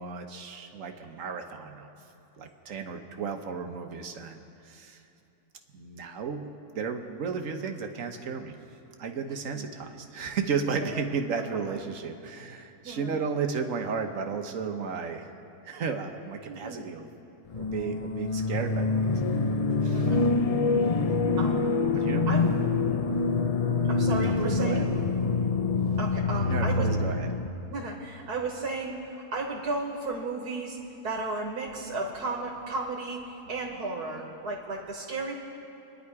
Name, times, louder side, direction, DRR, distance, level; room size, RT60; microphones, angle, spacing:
voice 1, 0.0-1.9 2.4-5.0 5.7-6.5 6.7-8.6 9.0-15.3 15.6-17.1 17.6-19.4 19.8-20.1 21.9-22.4 24.2-24.9 26.5-27.3, right 5 dB, 60° right, 5 dB, 1.4 m, -34 dB
voice 2, 11.4-11.7 12.8-13.2 16.5-16.9 19.9-20.2 21.4-21.9 22.3-22.6 23.9-24.9 26.0-26.9 27.7-30.8 31.0-35.3, right 3 dB, 85° right, 0 dB, 2.0 m, -34 dB
sound 1, 17.5-27.5, left 3 dB, 65° left, 0.3 m, -26 dB
26.0 x 11.0 x 4.8 m, 2.7 s
omnidirectional pair, 1.6 m